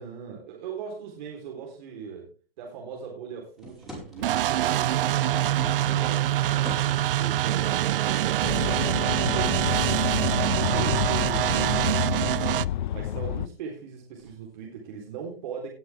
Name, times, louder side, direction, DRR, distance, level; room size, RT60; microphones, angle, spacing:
voice 1, 0.0-2.3 2.6-6.8 7.2-10.1 10.4-12.6 12.9-15.7, right 6 dB, 50° right, 0 dB, 3.9 m, -39 dB
sound 1, 3.6-4.5 5.0-7.3 8.3-8.8 9.1-9.2 9.9-11.3 14.2-14.4, equal, ahead, 5.0 m, -43 dB
sound 2, 4.2-12.6, right 13 dB, 65° right, 0.5 m, -25 dB
sound 3, 8.4-13.5, left 11 dB, 55° left, 0.6 m, -29 dB
18.5 x 7.8 x 3.5 m, 0.36 s
hypercardioid pair, 145°, 29 cm